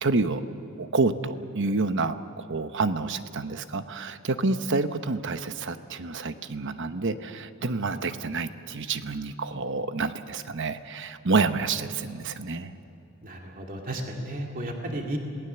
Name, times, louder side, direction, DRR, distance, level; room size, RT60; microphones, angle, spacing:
voice 1, 0.0-0.4 0.8-12.7, right 3 dB, 55° right, 10 dB, 1.0 m, -28 dB
voice 2, 13.2-15.2, right 1 dB, 40° right, 1 dB, 2.5 m, -33 dB
27.0 x 19.5 x 6.9 m, 3.0 s
head